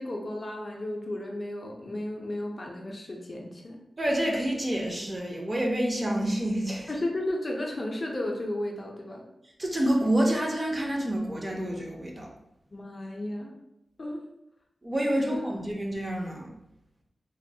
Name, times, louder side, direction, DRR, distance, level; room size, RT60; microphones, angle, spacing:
voice 1, 0.0-3.8 6.9-9.2 12.7-13.5 14.0-14.2 15.2-15.4, left 1 dB, 35° left, 0 dB, 0.4 m, -33 dB
voice 2, 4.0-6.9 9.6-12.3 14.8-16.5, right 1 dB, 25° right, 0 dB, 0.5 m, -28 dB
2.9 x 2.1 x 2.6 m, 0.84 s
wide cardioid pair, 120°, 0 cm